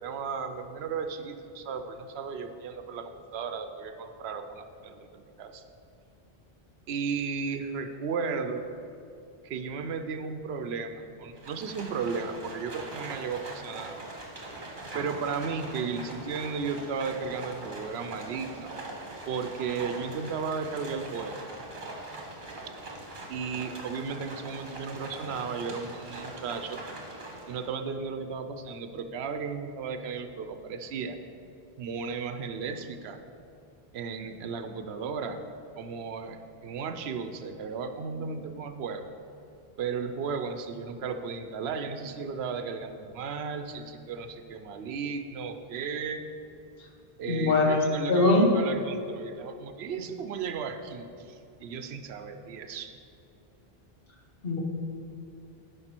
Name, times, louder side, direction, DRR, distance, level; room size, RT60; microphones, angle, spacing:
voice 1, 0.0-5.6 6.9-8.6 9.4-14.0 14.9-18.7 19.3-21.5 23.3-26.8 27.5-31.2 31.8-33.2 33.9-35.4 35.8-39.1 39.8-46.2 47.2-52.9, right 5 dB, 85° right, 8 dB, 0.9 m, -35 dB
Livestock farm animals working animals, 11.4-27.7, right 2 dB, 55° right, 1.5 m, -42 dB
voice 2, 47.2-48.5 54.4-54.6, left 2 dB, 65° left, 1 dB, 1.3 m, -22 dB
10.5 x 5.4 x 4.4 m, 2.7 s
omnidirectional pair, 1.0 m